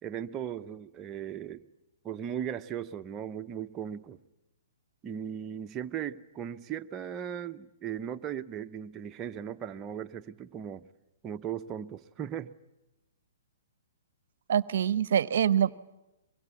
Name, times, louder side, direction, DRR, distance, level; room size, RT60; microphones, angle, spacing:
voice 1, 0.0-1.6 2.0-4.2 5.0-10.9 11.2-12.5, right 9 dB, 25° right, 8 dB, 0.8 m, -37 dB
voice 2, 14.5-15.8, right 9 dB, 60° right, 18 dB, 0.8 m, -25 dB
24.0 x 23.0 x 8.4 m, 0.98 s
hypercardioid pair, 125°, 0 cm